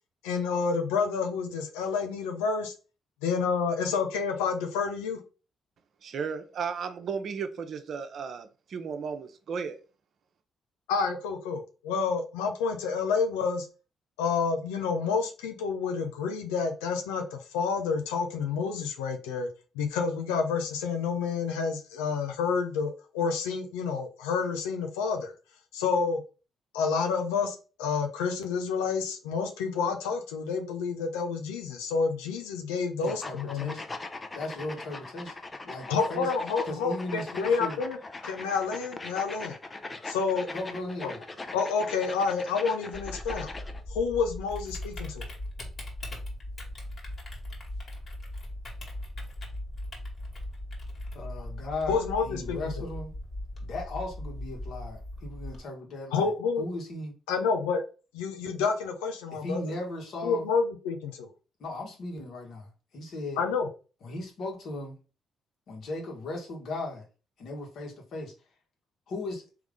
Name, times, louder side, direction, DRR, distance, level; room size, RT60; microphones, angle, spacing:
voice 1, 0.2-2.7 3.2-5.2 10.9-13.7 14.2-19.5 19.8-25.3 25.7-26.2 26.7-33.8 35.9-38.0 38.2-39.5 40.0-40.5 41.0-41.1 41.5-43.5 43.9-45.3 51.9-52.9 56.1-56.7 57.3-57.8 58.1-59.6 60.2-61.3 63.4-63.7, left 5 dB, 85° left, 0.6 m, -29 dB
voice 2, 6.0-9.8, right 6 dB, 60° right, 0.7 m, -34 dB
voice 3, 33.0-33.9 34.3-35.3 35.6-36.3 36.6-37.8 40.5-41.2 51.1-53.1 53.6-56.3 56.6-57.1 59.3-60.5 61.6-63.4 64.0-65.0 65.7-67.1 67.4-68.3 69.1-69.4, left 2 dB, 65° left, 1.7 m, -37 dB
sound 1, 33.1-43.8, left 3 dB, 30° left, 0.7 m, -41 dB
Typing, 42.9-55.6, left 1 dB, 45° left, 1.9 m, -39 dB
3.7 x 3.1 x 3.6 m
hypercardioid pair, 50°, 0 cm